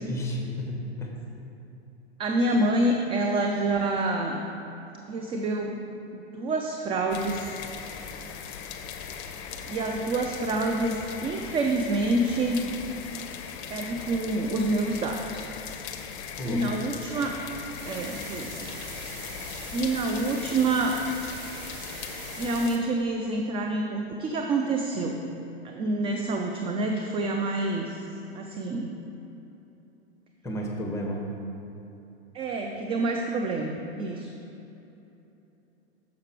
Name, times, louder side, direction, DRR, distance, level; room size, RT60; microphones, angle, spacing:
voice 1, 0.0-1.2 16.4-16.6 30.4-31.2, equal, 10° left, 0 dB, 1.3 m, -32 dB
voice 2, 2.2-4.4 5.1-5.8 6.1-7.6 9.7-12.7 13.7-15.4 16.5-17.4 17.9-18.7 19.7-21.0 22.4-25.2 25.6-28.0 28.3-28.9 32.3-34.3, right 2 dB, 20° right, 2 dB, 0.4 m, -27 dB
sound 1, 7.1-22.7, left 7 dB, 40° left, 0.7 m, -39 dB
sound 2, 17.8-22.8, right 5 dB, 60° right, 1.1 m, -43 dB
6.9 x 6.4 x 4.6 m, 3.0 s
hypercardioid pair, 105°, 32 cm